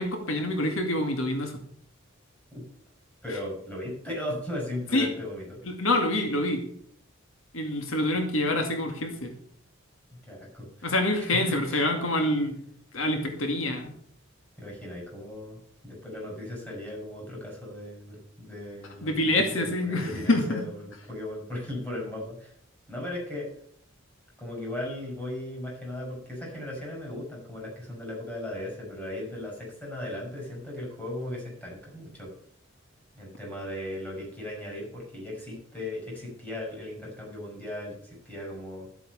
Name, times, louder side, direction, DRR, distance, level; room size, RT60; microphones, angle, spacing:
voice 1, 0.0-1.6 4.9-5.1 5.7-6.6 7.5-9.3 10.8-12.6 12.9-13.9 19.0-20.6, left 1 dB, 80° left, 4 dB, 2.3 m, -26 dB
voice 2, 3.2-5.6 10.3-10.9 11.2-11.8 14.6-15.6 15.8-22.5 22.9-23.5 24.4-32.3 33.2-38.9, left 1 dB, 10° left, -3 dB, 6.8 m, -37 dB
13.0 x 8.1 x 6.8 m, 0.65 s
head